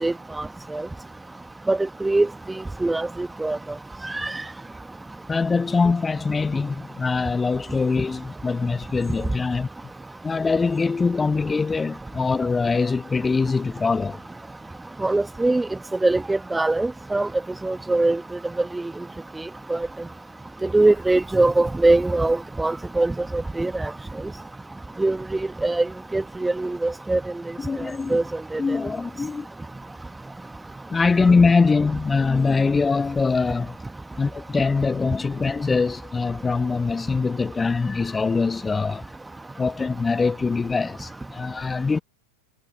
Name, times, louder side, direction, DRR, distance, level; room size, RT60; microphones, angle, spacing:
voice 1, 0.0-0.9 1.7-2.3 2.5-3.6 4.0-4.3 15.0-15.7 16.0-17.3 17.6-18.2 18.6-18.9 19.7-19.9 20.6-23.9 25.0-27.2 28.1-28.2 28.5-28.6, right 2 dB, 5° right, 1.7 m, -22 dB
voice 2, 5.3-9.7 10.2-14.2 27.6-28.2 28.6-29.5 30.9-33.8 34.2-39.0 39.6-42.0, left 4 dB, 15° left, 1.2 m, -23 dB
figure-of-eight pair, 90°, 0 cm